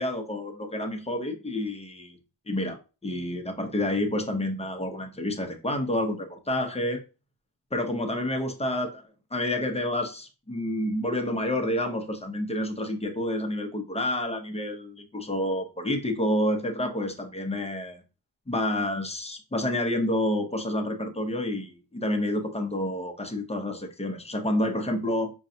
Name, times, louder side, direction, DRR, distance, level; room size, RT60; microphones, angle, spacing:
voice 1, 0.0-2.2 2.5-7.0 7.7-8.9 9.3-18.0 18.5-25.3, left 1 dB, 15° left, 4 dB, 0.6 m, -29 dB
5.1 x 2.3 x 2.7 m, 0.31 s
wide cardioid pair, 95°, 44 cm